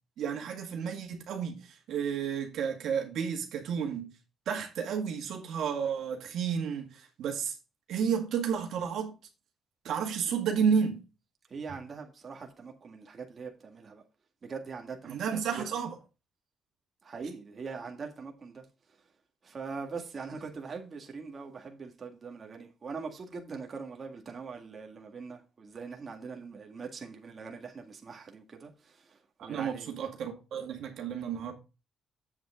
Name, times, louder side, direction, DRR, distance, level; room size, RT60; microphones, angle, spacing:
voice 1, 0.2-4.1 4.5-7.6 7.9-9.1 9.8-11.0 11.7-11.8 15.1-16.0 29.4-31.5, right 7 dB, 75° right, 2.0 m, -31 dB
voice 2, 11.5-14.0 14.4-15.2 17.0-18.6 19.4-29.9, right 5 dB, 40° right, 1.9 m, -42 dB
7.9 x 7.5 x 3.7 m
cardioid pair, 90°, 0 cm